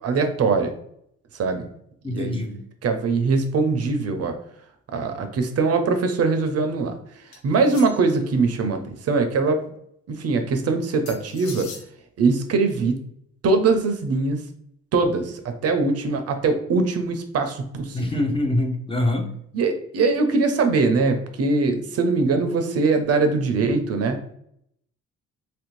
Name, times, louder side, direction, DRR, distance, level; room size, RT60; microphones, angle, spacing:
voice 1, 0.0-0.7 1.3-1.7 2.1-2.5 2.8-4.4 4.9-7.0 7.4-9.6 10.1-11.7 12.2-13.0 13.4-14.5 14.9-18.2 19.5-24.2, right 4 dB, 55° right, 7 dB, 0.5 m, -22 dB
voice 2, 2.0-2.6 17.9-19.3, left 1 dB, 20° left, 3 dB, 0.6 m, -24 dB
sound 1, 7.3-8.2 11.1-11.9, left 5 dB, 70° left, 0.7 m, -41 dB
3.0 x 2.5 x 3.0 m, 0.71 s
cardioid pair, 90°, 30 cm